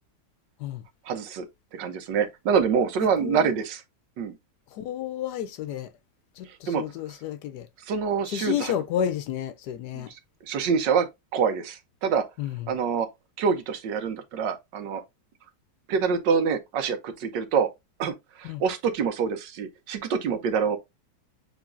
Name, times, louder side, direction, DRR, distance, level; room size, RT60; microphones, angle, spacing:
voice 1, 1.1-1.5 1.7-3.8 4.2-4.3 6.7-6.8 7.9-8.7 9.9-10.0 10.5-12.2 12.7-13.1 13.4-15.0 15.9-17.7 18.0-20.8, right 6 dB, 80° right, 1.5 m, -26 dB
voice 2, 3.0-3.5 4.7-5.9 6.4-7.7 8.3-10.1 12.4-12.8 18.4-18.6, left 10 dB, 75° left, 1.1 m, -31 dB
6.7 x 3.1 x 2.4 m
omnidirectional pair, 1.9 m